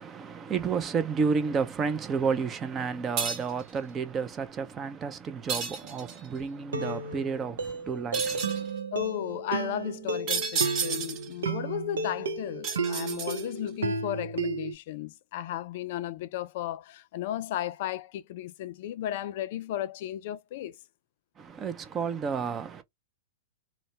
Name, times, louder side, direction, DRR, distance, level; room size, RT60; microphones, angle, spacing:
voice 1, 0.0-8.7 21.4-22.8, right 5 dB, 25° right, 0.5 m, -31 dB
sound 1, 3.2-3.6 5.5-6.3 8.1-8.7 10.3-11.3 12.6-13.7, right 6 dB, 45° right, 1.1 m, -31 dB
sound 2, 5.8-6.1 6.7-14.7, right 4 dB, 85° right, 0.7 m, -33 dB
voice 2, 8.9-20.8, left 12 dB, 55° left, 0.4 m, -35 dB
2.6 x 2.1 x 3.2 m
hypercardioid pair, 115°, 0 cm